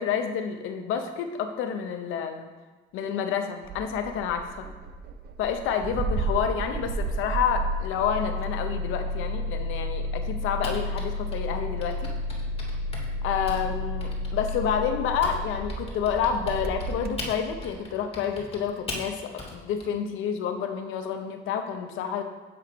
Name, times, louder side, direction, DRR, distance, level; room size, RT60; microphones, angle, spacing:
voice 1, 0.0-2.5 2.9-4.7 5.4-12.1 13.2-22.2, left 7 dB, 90° left, 7 dB, 0.6 m, -29 dB
Engine starting, 3.6-17.8, equal, 55° right, 0.4 m, -31 dB
Typing, 10.6-15.4 15.7-19.9, left 2 dB, 30° left, 1.3 m, -39 dB
7.6 x 2.9 x 4.9 m, 1.3 s
cardioid pair, 90°, 20 cm